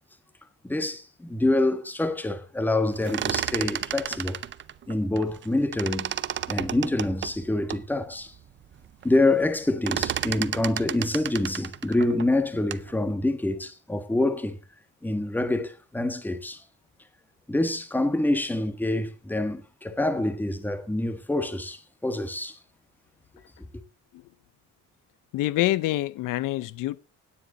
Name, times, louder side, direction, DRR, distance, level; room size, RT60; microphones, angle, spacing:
voice 1, 0.6-4.4 4.9-6.1 6.5-8.3 9.0-14.6 15.0-16.6 17.5-22.6, left 2 dB, 5° left, 1.3 m, -26 dB
sound 1, 2.9-5.5 5.7-7.9 8.4-8.5 8.7-9.1 9.4-12.9, right 10 dB, 35° right, 0.6 m, -32 dB
voice 2, 25.3-27.0, left 16 dB, 85° left, 0.7 m, -26 dB
17.0 x 9.9 x 3.9 m
cardioid pair, 160°, 31 cm